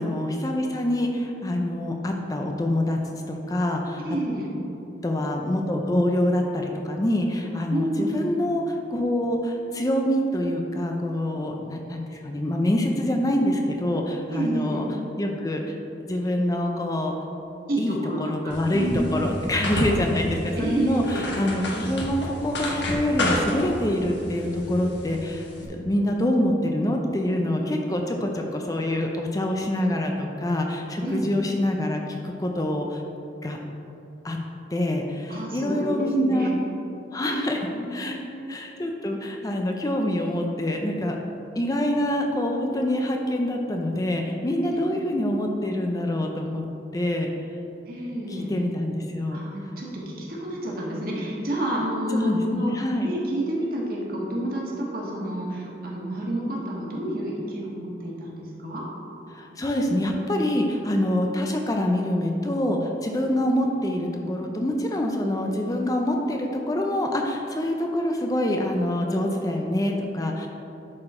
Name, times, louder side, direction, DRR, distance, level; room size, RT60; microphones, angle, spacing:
voice 1, 0.0-3.0 3.3-4.0 5.0-14.8 15.2-15.8 16.1-17.1 17.8-33.0 33.4-33.6 34.2-34.4 34.7-36.5 37.1-38.2 38.5-41.2 41.6-46.7 46.9-47.3 48.3-49.4 52.1-53.1 59.3-70.5, left 1 dB, 20° left, 2 dB, 0.5 m, -25 dB
voice 2, 4.0-4.5 7.7-8.2 14.3-14.8 17.7-19.3 20.6-21.3 31.0-31.3 35.3-36.5 37.2-37.5 37.8-38.5 44.6-44.8 47.9-48.5 49.3-52.7 53.0-58.8, right 1 dB, 55° right, -4 dB, 1.6 m, -29 dB
sound 1, 18.5-25.7, left 1 dB, 80° left, 1.3 m, -30 dB
10.5 x 4.4 x 4.3 m, 2.8 s
head